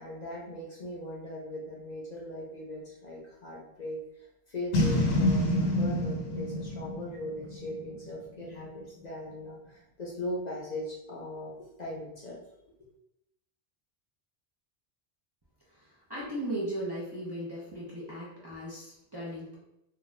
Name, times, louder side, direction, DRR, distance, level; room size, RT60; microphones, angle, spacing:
voice 1, 0.0-4.0 4.5-12.4, left 1 dB, 50° left, -4 dB, 0.6 m, -39 dB
Boom, 4.7-8.1, left 1 dB, 80° left, 0.9 m, -27 dB
voice 2, 15.7-19.6, right 1 dB, 30° right, -7 dB, 0.5 m, -37 dB
2.4 x 2.3 x 3.1 m, 0.84 s
omnidirectional pair, 1.0 m